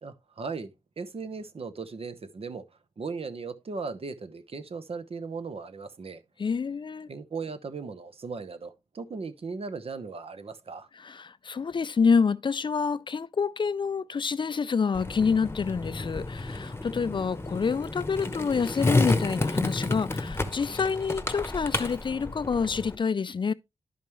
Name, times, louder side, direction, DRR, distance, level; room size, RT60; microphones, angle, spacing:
voice 1, 0.0-2.6 3.0-6.2 7.1-10.9, right 4 dB, 55° right, 0.9 m, -37 dB
voice 2, 6.4-7.1 10.9-23.5, left 5 dB, 45° left, 0.4 m, -27 dB
Skateboard, 14.9-22.9, left 2 dB, 20° left, 0.9 m, -30 dB
11.0 x 5.2 x 3.1 m
cardioid pair, 60°, 12 cm